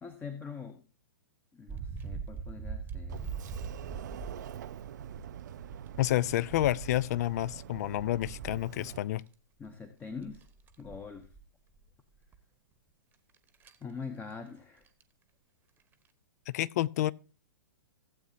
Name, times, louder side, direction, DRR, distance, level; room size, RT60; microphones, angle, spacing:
voice 1, 0.0-0.8 1.5-3.3 9.6-10.5 10.8-11.3 13.8-14.8, left 5 dB, 15° left, 0.9 m, -43 dB
sound 1, 1.7-5.2 5.6-9.3 9.7-9.8 10.1-11.4 11.8-11.9 12.3-12.4 13.3-13.8 14.9-15.0 15.8-16.1, right 5 dB, 15° right, 1.0 m, -42 dB
Sliding door, 3.1-9.0, right 10 dB, 55° right, 0.5 m, -45 dB
voice 2, 6.0-9.2 16.5-17.1, left 14 dB, 45° left, 0.4 m, -29 dB
15.5 x 8.2 x 2.7 m
figure-of-eight pair, 110°, 12 cm